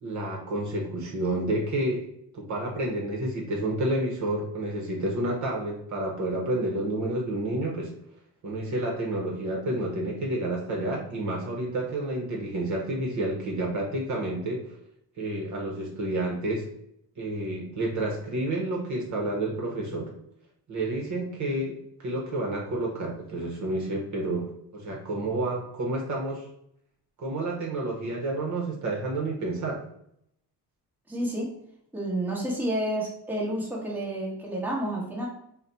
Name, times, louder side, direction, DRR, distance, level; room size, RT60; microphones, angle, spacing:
voice 1, 0.0-2.0 2.3-7.9 8.4-14.7 15.2-16.7 17.2-20.1 20.7-26.5 27.2-29.8, right 1 dB, 45° right, 0 dB, 0.9 m, -30 dB
voice 2, 31.1-31.5 31.9-35.3, right 1 dB, 5° right, -5 dB, 1.1 m, -30 dB
4.0 x 2.2 x 4.0 m, 0.74 s
cardioid pair, 145°, 41 cm